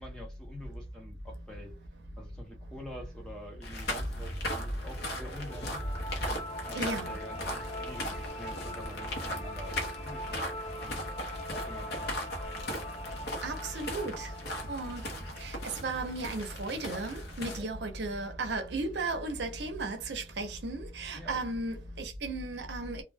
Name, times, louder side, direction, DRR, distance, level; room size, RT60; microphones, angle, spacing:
voice 1, 0.0-1.8 2.2-5.8 6.2-11.0 11.5-12.3 13.9-14.0 14.9-15.0 17.6-17.7 21.1-21.4, left 1 dB, 5° left, 0.7 m, -47 dB
sound 1, 3.6-17.6, left 1 dB, 55° left, 0.7 m, -38 dB
sound 2, 5.5-16.6, left 1 dB, 35° left, 0.3 m, -43 dB
voice 2, 6.7-7.2 13.4-14.3 14.7-15.0 15.4-23.0, right 2 dB, 65° right, 0.6 m, -35 dB
2.2 x 2.2 x 3.3 m
head